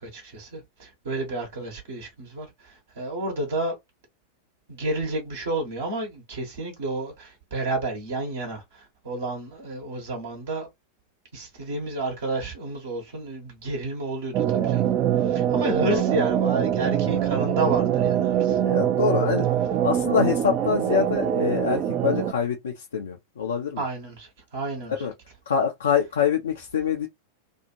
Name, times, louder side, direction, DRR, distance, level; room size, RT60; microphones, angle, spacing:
voice 1, 0.0-3.8 4.7-10.7 11.3-14.8 15.2-18.6 23.8-24.9, right 2 dB, 60° right, 1.1 m, -31 dB
sound 1, 14.3-22.3, right 10 dB, 35° right, 0.4 m, -23 dB
voice 2, 18.6-19.5 19.8-23.8 25.0-25.1 25.5-27.1, left 7 dB, 65° left, 0.5 m, -25 dB
2.6 x 2.5 x 2.7 m
figure-of-eight pair, 90°, 0 cm